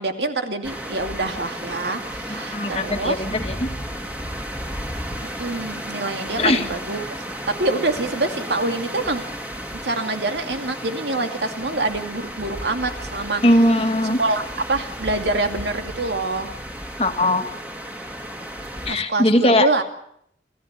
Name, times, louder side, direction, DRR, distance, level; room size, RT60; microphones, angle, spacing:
voice 1, 0.0-3.2 5.4-7.0 7.5-9.2 9.8-13.4 14.2-14.4 14.7-16.5 18.9-19.8, right 2 dB, 75° right, 6 dB, 2.5 m, -25 dB
sound 1, 0.6-19.0, equal, 10° right, 2.4 m, -33 dB
voice 2, 2.3-3.7 6.4-6.6 13.4-14.2 17.0-17.4 18.8-19.7, left 1 dB, 35° left, 6 dB, 1.8 m, -19 dB
29.5 x 14.5 x 8.2 m, 0.72 s
head